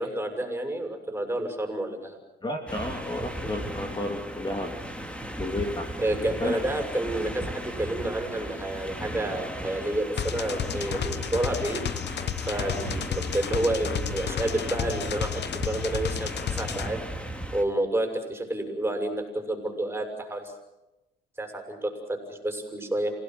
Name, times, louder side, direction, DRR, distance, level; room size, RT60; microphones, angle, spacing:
voice 1, 0.0-2.2 6.0-11.8 12.4-17.0 17.5-20.5 21.4-23.1, right 1 dB, 10° right, 4 dB, 6.7 m, -30 dB
voice 2, 2.4-4.7 5.4-5.8 6.4-6.6, left 1 dB, 20° left, 3 dB, 3.2 m, -31 dB
sound 1, 2.7-17.6, right 1 dB, 5° left, 3.3 m, -36 dB
sound 2, 10.2-16.9, left 9 dB, 60° left, 1.2 m, -32 dB
28.0 x 17.5 x 7.9 m, 0.98 s
cardioid pair, 90°, 20 cm